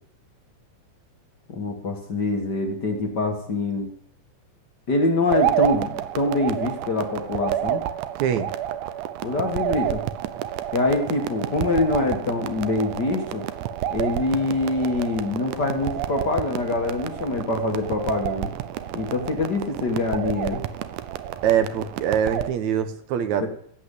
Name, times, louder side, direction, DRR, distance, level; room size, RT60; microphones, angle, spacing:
voice 1, 1.5-3.9 4.9-7.8 9.2-10.0 10.7-13.4 13.9-18.6 18.9-20.6 23.4-23.5, left 2 dB, 40° left, 3 dB, 1.9 m, -25 dB
sound 1, 5.3-22.5, right 11 dB, 90° right, 2.3 m, -29 dB
voice 2, 8.2-8.5 21.4-23.5, right 9 dB, 75° right, 10 dB, 2.3 m, -23 dB
16.0 x 8.6 x 8.3 m, 0.64 s
omnidirectional pair, 3.4 m